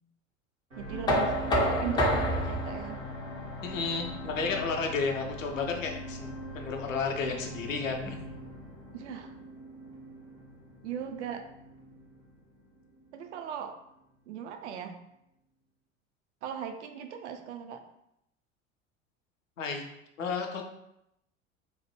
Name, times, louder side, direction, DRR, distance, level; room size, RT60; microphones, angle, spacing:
sound 1, 0.7-13.1 13.7-13.8, equal, 85° right, 1.1 m, -42 dB
voice 1, 0.8-3.0 8.9-9.3 10.8-11.4 13.1-13.8 14.3-15.0 16.4-17.8, right 8 dB, 65° right, 6 dB, 0.5 m, -38 dB
Knock, 1.1-6.9, equal, 10° left, 0.3 m, -31 dB
voice 2, 3.6-8.2 19.6-19.8 20.2-20.6, left 4 dB, 80° left, 3 dB, 0.6 m, -32 dB
3.1 x 2.1 x 3.0 m, 0.81 s
figure-of-eight pair, 70°, 39 cm